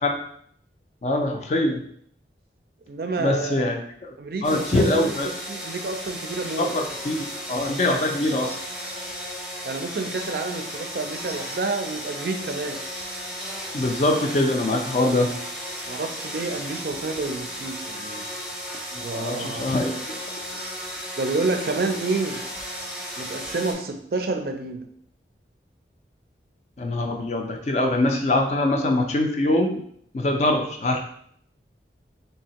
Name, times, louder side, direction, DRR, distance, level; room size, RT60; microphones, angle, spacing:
voice 1, 1.0-1.9 3.2-4.2 4.4-5.3 6.6-8.6 13.7-15.3 18.9-20.0 26.8-29.8 30.1-31.0, left 1 dB, 40° left, 3 dB, 0.4 m, -23 dB
voice 2, 2.9-3.6 4.2-6.7 9.6-12.8 15.9-18.2 19.0-19.8 21.2-22.4 23.2-24.9, right 3 dB, 55° right, 5 dB, 0.4 m, -29 dB
sound 1, 4.4-23.7, equal, 5° right, 0.6 m, -35 dB
3.4 x 2.7 x 2.9 m, 0.66 s
head